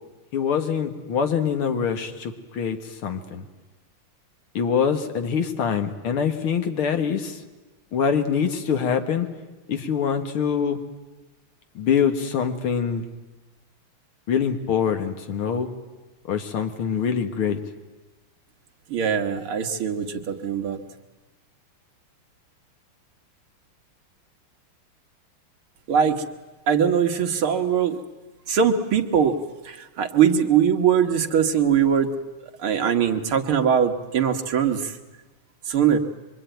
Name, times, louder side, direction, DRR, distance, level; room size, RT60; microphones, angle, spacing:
voice 1, 0.3-2.8 3.0-3.4 4.6-7.4 7.9-9.3 9.7-10.8 11.8-13.0 14.3-15.7 16.3-17.6, left 7 dB, 75° left, 6 dB, 2.5 m, -24 dB
voice 2, 18.9-20.8 25.9-26.3 26.7-28.0 28.5-29.4 29.6-32.1 32.6-35.0 35.7-36.0, right 8 dB, 70° right, 4 dB, 2.4 m, -21 dB
24.5 x 24.0 x 9.2 m, 1.2 s
omnidirectional pair, 2.4 m